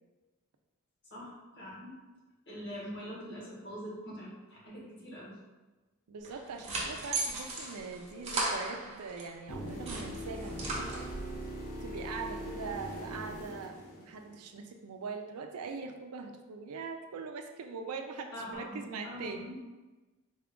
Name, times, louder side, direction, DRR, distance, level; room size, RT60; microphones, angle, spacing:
voice 1, 1.1-2.0 2.5-5.3 18.3-19.7, equal, 50° left, -5 dB, 1.4 m, -43 dB
voice 2, 6.1-11.1 11.8-19.5, right 4 dB, 80° right, 5 dB, 0.4 m, -42 dB
sound 1, 6.2-9.3 9.7-11.4, right 2 dB, 30° right, 0.8 m, -36 dB
sound 2, 9.5-14.5 18.5-18.6, equal, 85° left, 0.9 m, -41 dB
4.2 x 2.3 x 3.7 m, 1.2 s
head